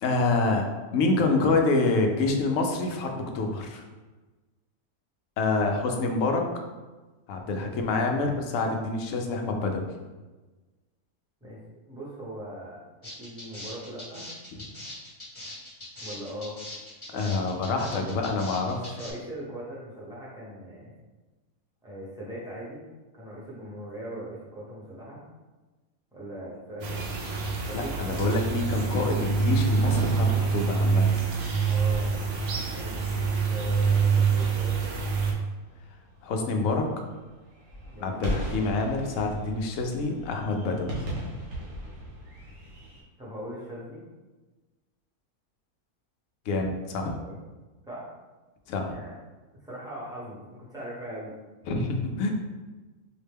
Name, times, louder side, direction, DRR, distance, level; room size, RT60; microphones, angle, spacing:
voice 1, 0.0-3.8 5.4-6.4 7.3-9.8 17.1-19.0 27.7-31.2 36.2-36.8 38.0-41.0 46.5-47.1 48.7-48.9 51.7-52.3, left 3 dB, 70° left, 3 dB, 0.8 m, -27 dB
voice 2, 5.5-6.0 7.5-8.0 11.4-11.6 11.9-14.3 16.0-16.6 17.1-17.3 17.8-18.4 18.9-20.9 21.8-22.8 23.1-25.2 26.1-27.0 27.7-28.6 31.6-32.1 32.6-32.9 33.5-35.0 37.8-38.4 43.2-44.0 47.1-47.4 47.9-48.1 48.9-49.2 49.6-51.3, right 1 dB, 5° right, -8 dB, 0.8 m, -40 dB
sound 1, 13.0-19.1, left 1 dB, 20° left, 1.1 m, -41 dB
sound 2, 26.8-35.3, right 5 dB, 60° right, 0.7 m, -26 dB
sound 3, 29.6-43.0, equal, 75° right, 1.3 m, -40 dB
4.8 x 2.1 x 3.4 m, 1.2 s
omnidirectional pair, 1.6 m